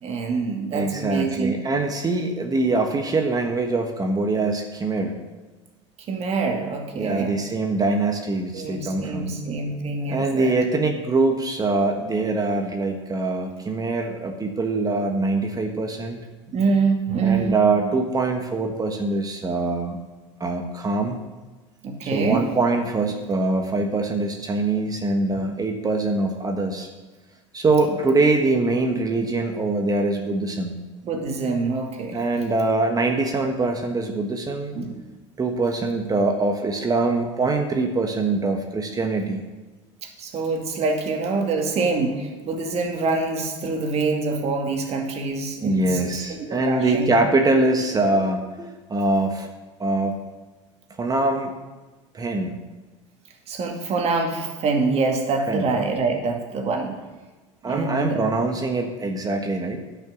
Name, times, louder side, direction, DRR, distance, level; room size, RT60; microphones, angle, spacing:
voice 1, 0.0-1.6 6.1-7.4 8.5-10.6 16.5-17.6 21.8-22.5 25.3-25.4 31.0-32.2 34.7-35.0 40.0-47.1 53.5-57.0 57.7-58.2, right 4 dB, 40° right, 3 dB, 2.2 m, -25 dB
voice 2, 0.7-5.2 7.0-9.3 10.1-16.2 17.2-20.0 20.4-21.2 22.1-26.9 27.5-30.8 32.1-34.7 35.4-39.4 45.6-49.5 49.8-50.2 51.0-51.5 52.1-52.6 55.5-55.7 57.6-59.8, right 3 dB, 25° right, 4 dB, 1.4 m, -23 dB
10.5 x 6.0 x 7.1 m, 1.2 s
hypercardioid pair, 90°, 16 cm